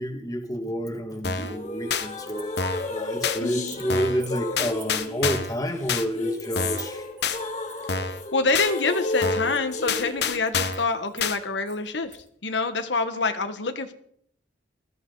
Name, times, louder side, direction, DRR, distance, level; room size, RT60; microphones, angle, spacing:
voice 1, 0.0-2.6 2.9-7.1, equal, 20° left, 5 dB, 2.0 m, -29 dB
sound 1, 0.9-2.1 2.3-3.9 4.2-12.3, right 6 dB, 30° right, 4.6 m, -49 dB
sound 2, 1.2-1.6 1.9-2.1 2.6-2.9 3.2-3.4 3.9-4.2 4.6-5.6 5.9-6.1 6.6-6.9 7.2-7.4 7.9-8.2 8.5-8.7 9.2-9.5 9.9-10.9 11.2-11.4, left 5 dB, 65° left, 1.2 m, -27 dB
sound 3, 1.3-10.3, left 2 dB, 40° left, 2.3 m, -33 dB
voice 2, 3.4-3.8 8.3-13.9, left 3 dB, 90° left, 8 dB, 1.4 m, -26 dB
20.5 x 14.5 x 4.0 m, 0.68 s
head